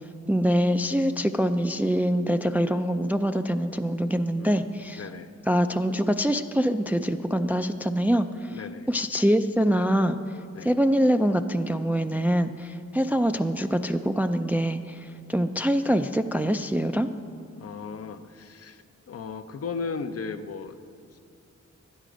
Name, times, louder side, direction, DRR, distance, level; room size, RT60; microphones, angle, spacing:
voice 1, 0.3-5.1 5.5-8.6 8.9-10.2 10.6-17.1, equal, 5° right, 8 dB, 0.3 m, -24 dB
voice 2, 5.0-5.3 8.5-8.9 10.5-10.7 17.6-20.8 21.1-21.2, left 5 dB, 55° left, 9 dB, 0.6 m, -36 dB
12.0 x 9.1 x 5.0 m, 2.4 s
wide cardioid pair, 95°, 29 cm